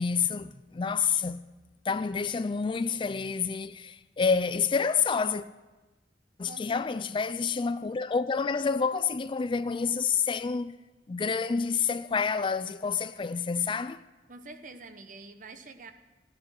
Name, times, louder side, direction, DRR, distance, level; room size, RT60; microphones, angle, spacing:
voice 1, 0.0-1.5 1.9-5.4 6.4-10.8 11.1-14.0, left 5 dB, 30° left, 0.4 m, -28 dB
voice 2, 6.5-7.2 14.3-15.9, right 3 dB, 50° right, 1.1 m, -47 dB
14.5 x 10.0 x 6.5 m
head